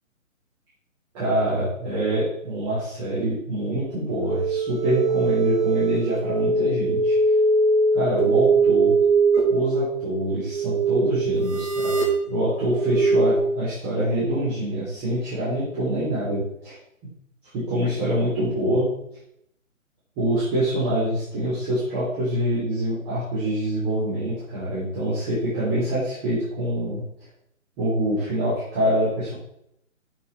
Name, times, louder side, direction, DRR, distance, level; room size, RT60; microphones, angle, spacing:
voice 1, 1.1-7.1 7.9-8.9 9.5-12.0 12.3-16.8 17.5-18.9 20.2-27.0 27.8-29.3, right 1 dB, 25° right, -10 dB, 3.6 m, -25 dB
sound 1, 4.2-13.4, right 3 dB, 50° right, 3.6 m, -22 dB
8.9 x 6.7 x 4.3 m, 0.76 s
hypercardioid pair, 150°, 41 cm